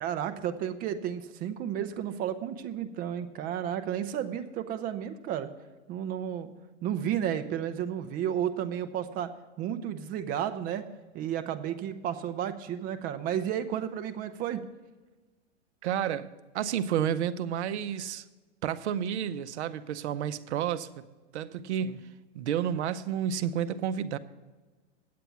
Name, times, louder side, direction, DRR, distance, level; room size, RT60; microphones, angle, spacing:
voice 1, 0.0-5.5 5.9-6.5 6.8-9.3 9.6-10.8 11.1-14.6 21.8-22.0, right 10 dB, 25° right, 9 dB, 0.6 m, -32 dB
voice 2, 15.8-16.3 16.5-18.2 18.6-20.9 21.3-22.0 22.3-24.2, right 9 dB, 70° right, 13 dB, 0.7 m, -30 dB
9.4 x 7.7 x 5.8 m, 1.3 s
hypercardioid pair, 140°, 35 cm